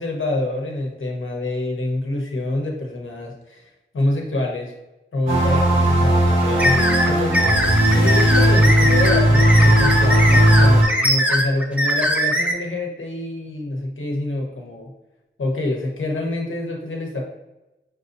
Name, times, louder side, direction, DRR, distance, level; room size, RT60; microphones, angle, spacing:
voice 1, 0.0-3.6 3.9-4.7 5.1-7.5 7.9-14.9 15.4-17.2, left 2 dB, 80° left, 0 dB, 1.1 m, -26 dB
sound 1, 5.3-10.8, right 1 dB, 80° right, 1.5 m, -16 dB
sound 2, 6.6-12.5, equal, 5° right, 0.7 m, -21 dB
6.1 x 2.8 x 2.6 m, 1.0 s
wide cardioid pair, 105°, 20 cm